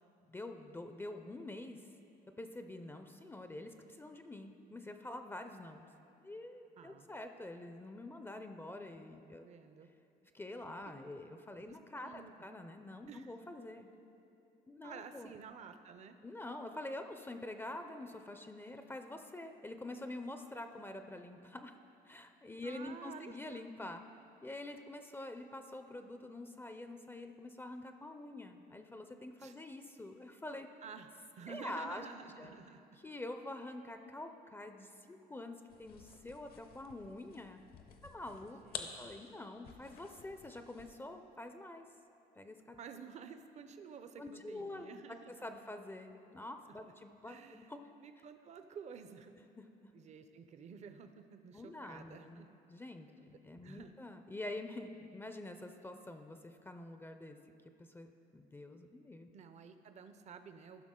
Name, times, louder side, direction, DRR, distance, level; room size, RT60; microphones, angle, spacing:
voice 1, 0.3-1.9 2.4-5.8 6.2-9.5 10.3-13.9 14.7-15.3 16.2-21.7 22.1-24.0 24.4-30.7 31.5-32.1 32.4-32.5 33.0-37.6 38.0-41.9 42.4-42.8 44.2-47.9 49.6-49.9 51.5-52.4 52.7-57.4 57.8-59.3, left 2 dB, 15° left, 7 dB, 0.4 m, -46 dB
voice 2, 6.8-7.1 9.3-9.9 11.6-12.3 13.1-13.4 14.8-16.2 22.6-23.6 29.4-29.5 30.8-31.1 31.4-32.8 38.6-39.1 42.8-45.3 47.3-47.7 48.0-49.3 49.9-52.5 53.2-53.3 53.6-53.9 59.3-60.8, right 6 dB, 40° right, 9 dB, 0.5 m, -51 dB
sound 1, 35.7-41.1, left 6 dB, 65° left, 0.8 m, -51 dB
14.5 x 5.8 x 3.7 m, 2.8 s
cardioid pair, 110°, 17 cm